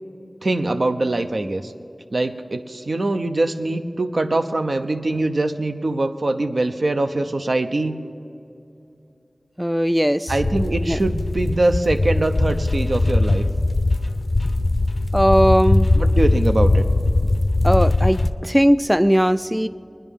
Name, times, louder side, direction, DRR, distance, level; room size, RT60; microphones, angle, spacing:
voice 1, 0.4-1.7 2.1-8.0 10.3-13.5 15.9-16.8, right 2 dB, 70° right, 7 dB, 0.7 m, -23 dB
voice 2, 9.6-10.3 10.9-11.0 15.1-15.9 17.6-19.7, equal, 5° right, 11 dB, 0.3 m, -18 dB
sound 1, 10.3-18.3, left 2 dB, 60° left, 0.5 m, -20 dB
22.5 x 10.0 x 3.6 m, 2.7 s
wide cardioid pair, 60°, 0 cm